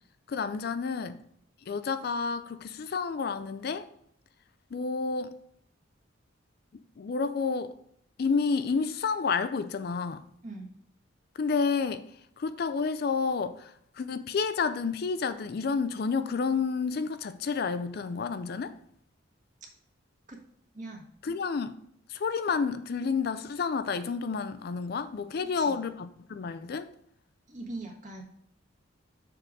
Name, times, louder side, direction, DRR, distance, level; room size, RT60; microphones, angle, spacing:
voice 1, 0.3-1.2 1.7-3.9 4.7-5.3 6.7-7.8 8.2-10.2 11.4-12.0 12.4-18.8 21.2-21.8 22.1-26.9, left 5 dB, 55° left, 0.4 m, -30 dB
voice 2, 20.7-21.1 25.6-25.8 27.5-28.2, right 2 dB, 40° right, 1.5 m, -41 dB
6.7 x 3.8 x 5.9 m
head